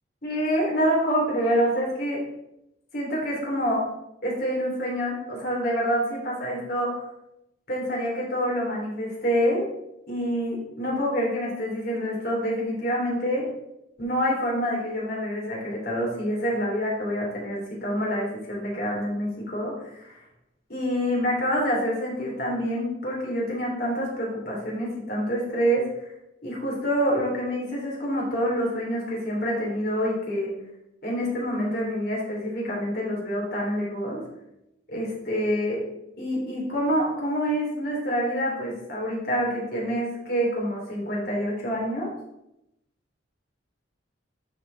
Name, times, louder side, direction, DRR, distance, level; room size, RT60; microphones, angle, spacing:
voice 1, 0.2-2.2 2.9-3.8 4.2-6.9 7.7-9.6 10.1-13.4 14.0-20.2 20.7-26.1 26.4-30.5 31.0-34.2 34.9-35.8 36.2-42.1, equal, 50° left, -4 dB, 3.4 m, -27 dB
11.5 x 4.6 x 4.1 m, 0.84 s
head